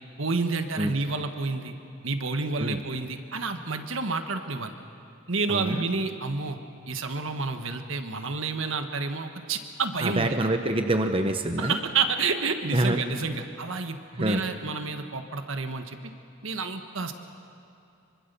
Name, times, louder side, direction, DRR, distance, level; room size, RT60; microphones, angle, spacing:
voice 1, 0.2-1.7 2.0-4.7 5.3-6.6 6.9-10.4 11.6-16.0 16.4-17.1, right 4 dB, 70° right, 6 dB, 1.5 m, -29 dB
voice 2, 5.5-5.8 10.0-11.8 12.7-13.0 14.2-14.4, right 1 dB, 25° right, 6 dB, 0.9 m, -26 dB
24.5 x 24.0 x 7.0 m, 2.6 s
head